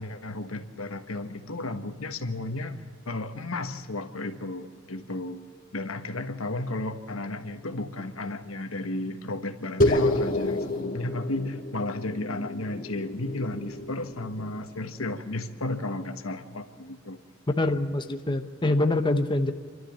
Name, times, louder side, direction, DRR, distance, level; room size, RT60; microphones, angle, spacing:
voice 1, 0.0-5.4 5.7-17.2, left 2 dB, 85° left, 7 dB, 1.5 m, -33 dB
sound 1, 9.8-14.6, left 1 dB, 40° left, 2.2 m, -29 dB
voice 2, 17.6-19.5, left 2 dB, 25° left, 6 dB, 0.9 m, -25 dB
29.0 x 13.0 x 7.4 m, 2.1 s
head